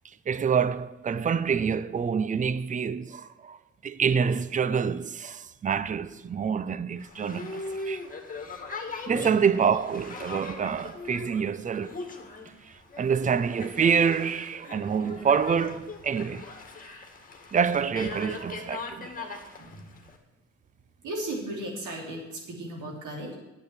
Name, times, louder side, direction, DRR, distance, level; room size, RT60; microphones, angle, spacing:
voice 1, 0.3-3.6 3.8-8.0 9.1-12.0 13.0-16.4 17.5-19.4, right 6 dB, 25° right, 0.5 m, -27 dB
Boat Water vehicle, 7.0-20.2, left 3 dB, 25° left, 2.0 m, -40 dB
voice 2, 9.9-10.3 16.2-16.3 19.6-19.9 21.0-23.3, right 1 dB, 85° right, 3.2 m, -36 dB
9.4 x 8.3 x 7.3 m
cardioid pair, 90°, 30 cm